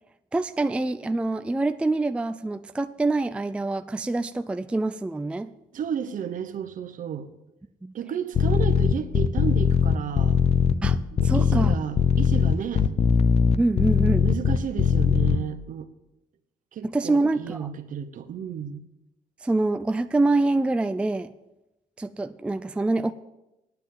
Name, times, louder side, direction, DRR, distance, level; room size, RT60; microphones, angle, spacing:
voice 1, 0.3-5.5 7.8-7.9 10.8-11.7 13.6-14.3 16.8-17.7 19.4-21.3 22.0-23.1, right 2 dB, 5° right, 11 dB, 0.3 m, -25 dB
voice 2, 5.7-7.3 7.9-10.4 11.2-12.9 14.2-15.9 16.7-18.8, right 8 dB, 60° right, 10 dB, 1.1 m, -32 dB
sound 1, 8.3-15.4, left 7 dB, 40° left, 0.6 m, -20 dB
9.4 x 9.1 x 7.4 m, 0.94 s
cardioid pair, 120°, 15 cm